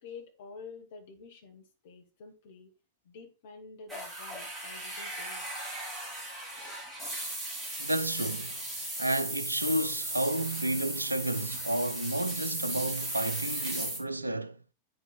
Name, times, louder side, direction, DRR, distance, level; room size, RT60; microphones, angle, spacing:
voice 1, 0.0-2.7 3.0-5.5 6.6-6.8, left 4 dB, 55° left, 1.9 m, -49 dB
sound 1, 3.9-14.0, right 1 dB, 5° right, 3.6 m, -36 dB
voice 2, 7.8-8.7 9.0-14.6, right 1 dB, 85° right, 0.6 m, -31 dB
9.4 x 5.4 x 4.3 m
figure-of-eight pair, 90°, 0 cm